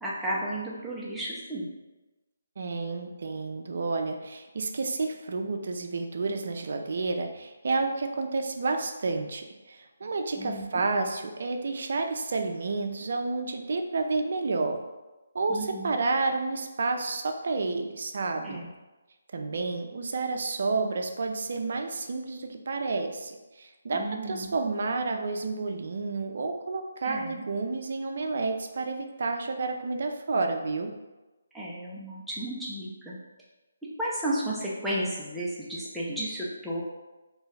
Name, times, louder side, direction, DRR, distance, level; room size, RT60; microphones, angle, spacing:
voice 1, 0.0-1.7 10.4-10.6 15.5-15.9 18.4-18.7 23.9-24.6 27.0-27.4 31.5-33.2 34.0-36.8, right 1 dB, ahead, -8 dB, 0.5 m, -33 dB
voice 2, 2.6-14.8 15.3-18.6 19.3-30.9, right 3 dB, 60° right, 5 dB, 0.4 m, -30 dB
2.7 x 2.3 x 3.1 m, 1.1 s
figure-of-eight pair, 155°, 0 cm